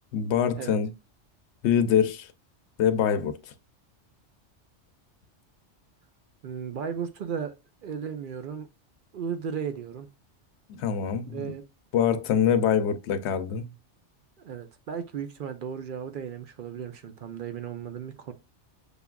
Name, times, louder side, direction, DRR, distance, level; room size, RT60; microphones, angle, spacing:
voice 1, 0.1-0.9 1.6-2.3 2.8-3.4 10.7-11.5 11.9-13.7, left 8 dB, 75° left, 0.8 m, -24 dB
voice 2, 6.4-7.5 7.8-8.7 9.1-10.1 11.3-11.6 14.4-18.3, right 7 dB, 60° right, 0.6 m, -35 dB
6.7 x 2.3 x 2.2 m
omnidirectional pair, 1.2 m